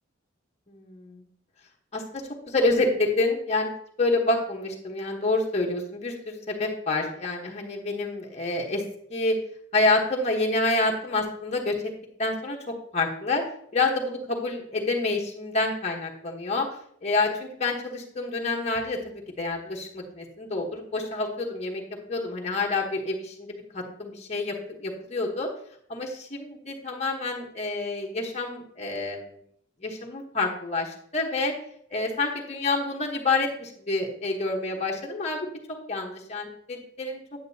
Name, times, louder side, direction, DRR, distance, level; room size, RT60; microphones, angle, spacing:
voice 1, 0.7-1.3 1.9-3.7 4.0-8.8 9.1-9.4 9.7-11.7 12.2-13.4 13.7-16.7 17.0-21.8 22.1-25.5 25.9-29.4 29.8-31.5 31.9-35.5 35.9-37.2, left 2 dB, 35° left, -1 dB, 1.2 m, -28 dB
8.9 x 8.8 x 2.8 m, 0.66 s
head